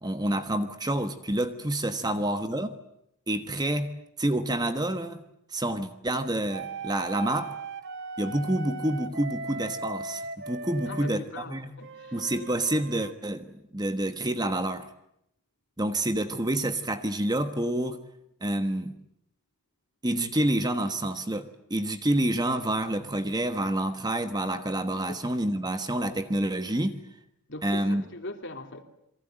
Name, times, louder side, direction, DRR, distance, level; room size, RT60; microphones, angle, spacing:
voice 1, 0.0-2.8 3.3-5.2 5.5-7.5 8.2-11.7 12.1-14.9 15.8-18.0 18.4-18.9 20.0-27.0 27.6-28.0, right 1 dB, 20° right, 1.3 m, -28 dB
voice 2, 1.9-2.2 10.9-12.2 25.1-25.3 27.5-28.8, left 2 dB, 55° left, 3.1 m, -41 dB
sound 1, 6.5-11.2 11.8-13.1, right 4 dB, 50° right, 1.8 m, -38 dB
27.0 x 23.5 x 9.1 m
head